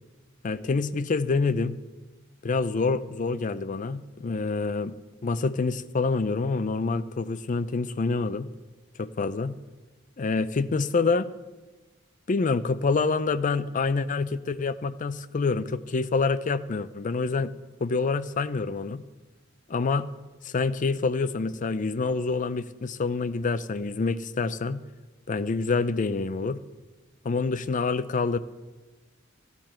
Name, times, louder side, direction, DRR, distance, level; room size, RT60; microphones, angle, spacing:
voice 1, 0.4-1.8 2.4-4.9 5.2-8.5 9.0-9.6 10.2-11.3 12.3-17.5 17.8-19.0 19.7-20.1 20.4-24.8 25.3-26.6 27.2-28.4, left 4 dB, 40° left, 13 dB, 0.5 m, -27 dB
14.5 x 9.8 x 4.4 m, 1.2 s
head